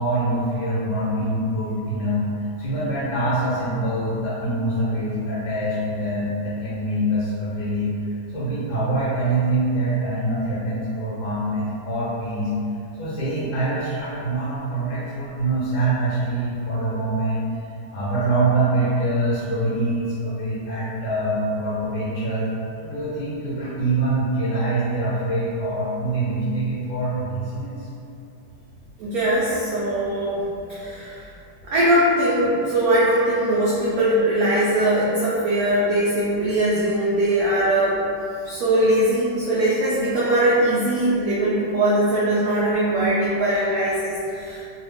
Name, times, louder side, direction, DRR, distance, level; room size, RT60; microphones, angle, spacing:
voice 1, 0.0-12.5 13.0-17.4 17.9-22.5 22.8-27.9, right 2 dB, 70° left, -9 dB, 1.4 m, -24 dB
voice 2, 29.0-31.3 31.6-38.0 38.4-44.7, right 1 dB, 90° right, -8 dB, 0.8 m, -21 dB
3.2 x 2.3 x 3.4 m, 2.7 s
omnidirectional pair, 2.2 m